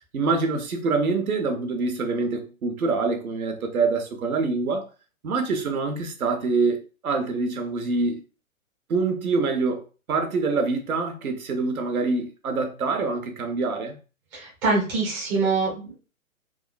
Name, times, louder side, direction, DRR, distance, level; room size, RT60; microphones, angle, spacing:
voice 1, 0.0-4.9 5.2-8.2 8.9-9.8 10.1-14.0, right 4 dB, 80° right, 1.0 m, -25 dB
voice 2, 14.3-16.0, right 3 dB, 10° right, 0.4 m, -24 dB
3.5 x 2.2 x 2.4 m
hypercardioid pair, 135°, 42 cm